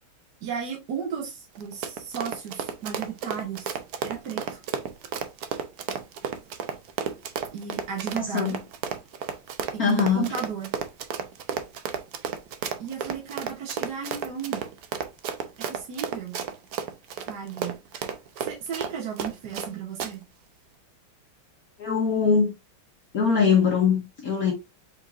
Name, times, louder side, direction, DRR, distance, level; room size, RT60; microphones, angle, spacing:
voice 1, 0.4-3.8 4.0-4.6 7.5-8.6 9.7-10.7 12.8-14.6 15.7-16.3 17.3-17.8 18.4-20.2, right 7 dB, 55° right, 1.4 m, -34 dB
Run, 1.5-19.7 20.0-20.1, right 7 dB, 90° right, 0.8 m, -32 dB
voice 2, 8.1-8.6 9.8-10.3 21.8-22.5 23.1-24.5, left 6 dB, 50° left, 1.2 m, -22 dB
5.2 x 3.9 x 2.5 m
omnidirectional pair, 2.4 m